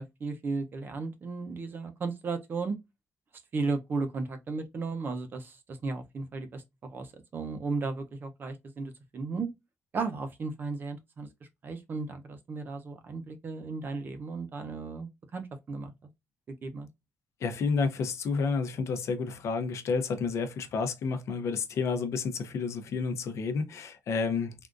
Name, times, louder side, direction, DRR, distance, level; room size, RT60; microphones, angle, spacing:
voice 1, 0.0-2.8 3.5-7.1 7.3-9.5 9.9-11.3 11.6-15.9 16.6-16.9, right 4 dB, 40° right, 0.6 m, -35 dB
voice 2, 17.4-24.5, left 4 dB, 65° left, 0.6 m, -30 dB
3.6 x 2.4 x 2.4 m
cardioid pair, 155°, 5 cm